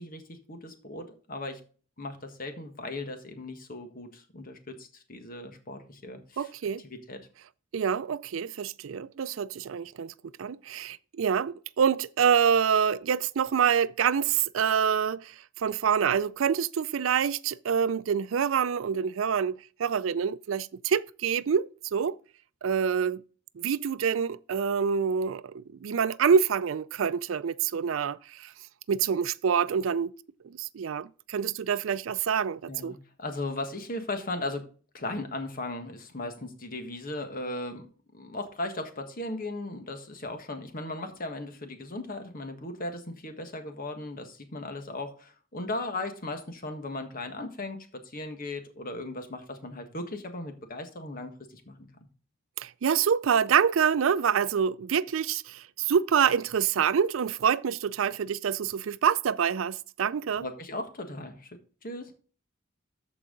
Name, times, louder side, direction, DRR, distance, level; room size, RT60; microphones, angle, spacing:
voice 1, 0.0-1.6 2.0-6.5 6.8-7.2 32.7-34.7 34.9-37.9 38.1-51.9 60.4-61.5 61.8-62.1, left 2 dB, 45° left, 1.6 m, -37 dB
voice 2, 6.4-6.8 7.7-22.2 22.6-23.2 23.6-28.5 28.9-30.1 30.4-33.0 52.6-60.4, right 7 dB, 90° right, 0.4 m, -26 dB
14.0 x 4.8 x 3.8 m
head